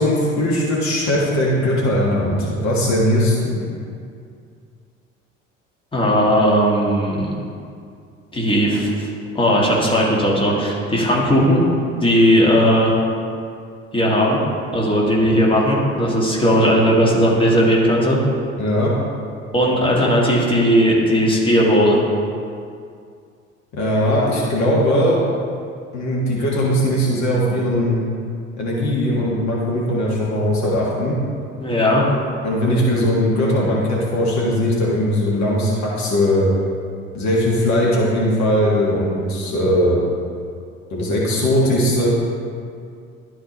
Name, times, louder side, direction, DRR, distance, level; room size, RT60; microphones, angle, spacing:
voice 1, 0.0-3.7 15.2-15.3 18.6-18.9 23.7-25.2 25.9-28.0 28.6-31.2 32.4-36.5 37.1-40.0 40.9-42.1, left 1 dB, 45° left, -4 dB, 1.7 m, -19 dB
voice 2, 5.9-7.3 8.3-8.9 9.4-11.6 11.9-12.9 13.9-14.4 14.7-18.2 19.5-22.0 31.6-32.0, equal, 15° left, -4 dB, 1.8 m, -17 dB
12.0 x 4.7 x 3.0 m, 2.3 s
figure-of-eight pair, 60°, 38 cm